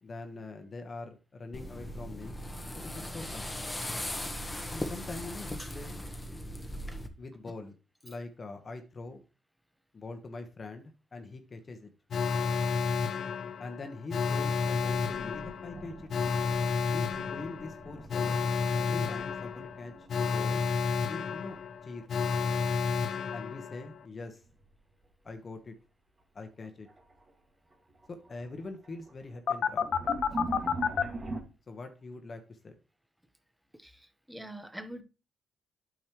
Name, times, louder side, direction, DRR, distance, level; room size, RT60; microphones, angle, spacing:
voice 1, 0.0-2.4 2.8-3.5 4.7-6.0 7.2-7.8 8.0-9.2 9.9-11.9 13.6-16.1 16.8-20.7 21.0-22.1 23.3-24.4 25.2-25.7 26.3-26.9 28.1-29.9 31.7-32.7, left 3 dB, 35° left, 1.2 m, -43 dB
sound 1, 1.5-7.1, left 1 dB, 15° left, 1.3 m, -38 dB
Alarm, 12.1-24.0 29.5-31.0, left 5 dB, 60° left, 0.7 m, -31 dB
sound 2, 14.7-21.6 21.8-22.7 24.4-24.8 25.3-25.4 26.4-26.5 26.9-27.3 27.7-31.4, right 2 dB, 30° right, 2.0 m, -43 dB
voice 2, 33.8-35.0, right 1 dB, 5° right, 1.1 m, -44 dB
8.7 x 6.4 x 3.1 m
cardioid pair, 90°, 0 cm